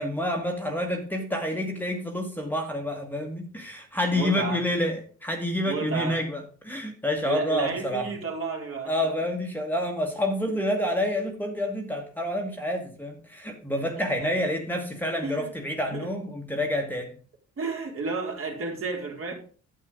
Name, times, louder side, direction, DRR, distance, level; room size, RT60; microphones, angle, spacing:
voice 1, 0.0-8.1 8.9-17.2, left 1 dB, 5° left, 1.5 m, -28 dB
voice 2, 4.1-4.7 5.6-6.2 7.2-9.1 14.0-14.5 15.2-15.5 15.9-16.1 17.6-19.3, right 4 dB, 45° right, 2.9 m, -32 dB
9.3 x 7.6 x 3.8 m
cardioid pair, 90°, 30 cm